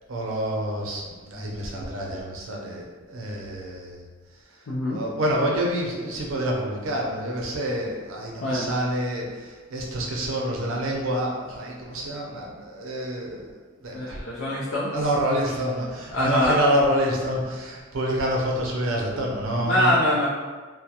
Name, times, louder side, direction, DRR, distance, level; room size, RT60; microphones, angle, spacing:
voice 1, 0.1-4.1 4.9-13.5 13.8-14.2 14.9-20.0, right 1 dB, 70° right, -1 dB, 0.5 m, -27 dB
voice 2, 4.7-5.0 8.4-8.7 13.9-14.9 16.1-16.5 19.6-20.3, left 1 dB, 65° left, -8 dB, 0.4 m, -24 dB
2.3 x 2.0 x 2.8 m, 1.4 s
head